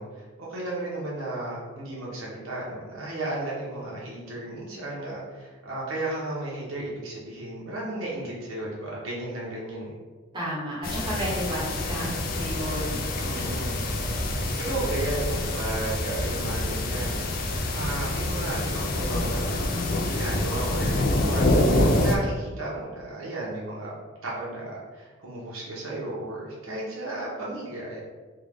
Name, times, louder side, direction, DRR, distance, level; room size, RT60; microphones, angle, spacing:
voice 1, 0.0-9.9 13.2-13.8 14.5-17.2 17.7-19.6 20.0-23.9 24.2-28.0, right 2 dB, 80° right, -5 dB, 1.0 m, -34 dB
voice 2, 10.3-13.2, equal, 20° right, -6 dB, 0.7 m, -32 dB
sound 1, 10.8-22.2, left 1 dB, 45° left, 0.4 m, -26 dB
3.5 x 2.4 x 3.5 m, 1.4 s
head